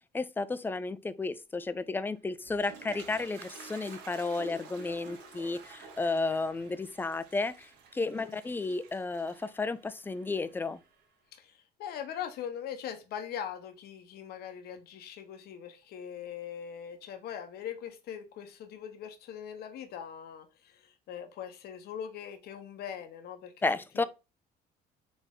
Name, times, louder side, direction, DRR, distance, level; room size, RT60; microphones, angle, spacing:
voice 1, 0.1-10.8 23.6-24.0, left 3 dB, 10° left, 0.3 m, -33 dB
Toilet flush, 2.2-11.0, right 4 dB, 90° right, 1.2 m, -50 dB
voice 2, 8.0-8.4 11.3-23.5, left 8 dB, 70° left, 0.8 m, -41 dB
4.2 x 3.4 x 3.6 m
cardioid pair, 110°, 17 cm